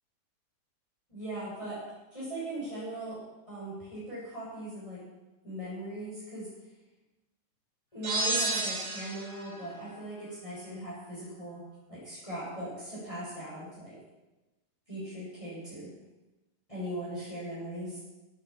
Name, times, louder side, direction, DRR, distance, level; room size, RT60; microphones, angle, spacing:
voice 1, 1.1-1.8 2.1-3.2 3.5-5.0 5.4-6.5 7.9-11.6 11.9-14.0 14.9-15.9 16.7-18.0, right 1 dB, 15° left, -9 dB, 8.1 m, -39 dB
sound 1, 8.0-9.4, right 2 dB, 50° right, 2.7 m, -30 dB
17.5 x 9.2 x 8.9 m, 1.0 s
omnidirectional pair, 1.9 m